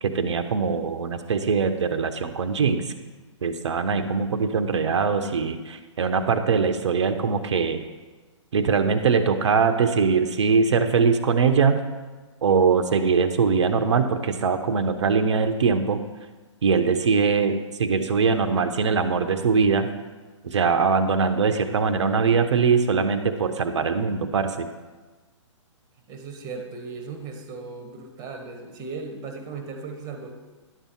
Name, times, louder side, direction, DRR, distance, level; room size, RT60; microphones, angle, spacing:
voice 1, 0.0-2.9 3.4-7.8 8.5-11.8 12.4-16.0 16.6-19.9 20.4-24.7, right 5 dB, 65° right, 8 dB, 0.9 m, -22 dB
voice 2, 26.1-30.3, right 4 dB, 25° right, 5 dB, 1.3 m, -37 dB
11.0 x 6.9 x 4.6 m, 1.3 s
figure-of-eight pair, 125°, 16 cm